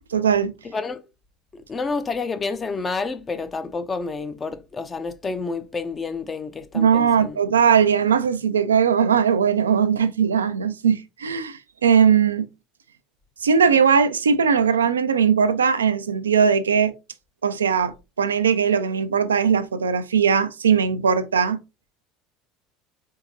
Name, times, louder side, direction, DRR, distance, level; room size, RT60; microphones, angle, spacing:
voice 1, 0.1-0.5 6.7-12.5 13.4-16.9 17.4-21.6, right 7 dB, 85° right, 0.4 m, -19 dB
voice 2, 0.7-1.0 1.5-7.4, left 4 dB, 25° left, 0.7 m, -29 dB
4.6 x 3.6 x 2.7 m
figure-of-eight pair, 70°, 0 cm